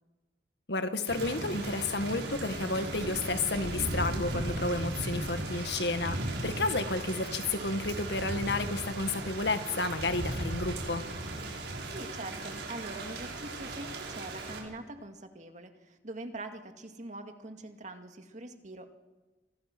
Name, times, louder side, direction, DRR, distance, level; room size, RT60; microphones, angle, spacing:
voice 1, 0.7-11.0, left 2 dB, 70° left, 8 dB, 1.8 m, -31 dB
Thunder / Rain, 1.1-14.6, right 1 dB, 80° right, 6.0 m, -37 dB
voice 2, 11.6-18.9, right 2 dB, 45° right, 5 dB, 2.2 m, -44 dB
27.5 x 25.5 x 6.2 m, 1.2 s
head